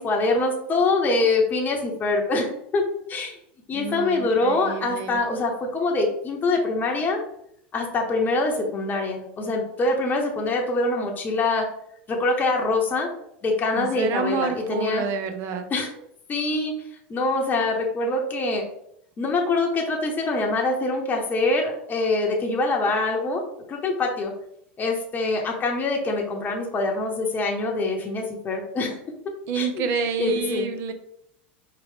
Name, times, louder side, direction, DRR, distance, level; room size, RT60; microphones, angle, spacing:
voice 1, 0.0-2.8 3.1-3.4 3.7-7.2 7.7-11.7 12.1-13.1 13.4-15.1 15.7-15.9 16.3-16.7 17.1-18.6 19.2-23.4 23.7-24.3 24.8-29.0 29.5-29.9 30.2-30.7, left 2 dB, 30° left, 1 dB, 0.9 m, -24 dB
voice 2, 3.7-5.2 13.7-15.6 29.5-30.9, right 6 dB, 50° right, 7 dB, 0.6 m, -28 dB
4.7 x 2.4 x 3.5 m, 0.74 s
hypercardioid pair, 90°, 6 cm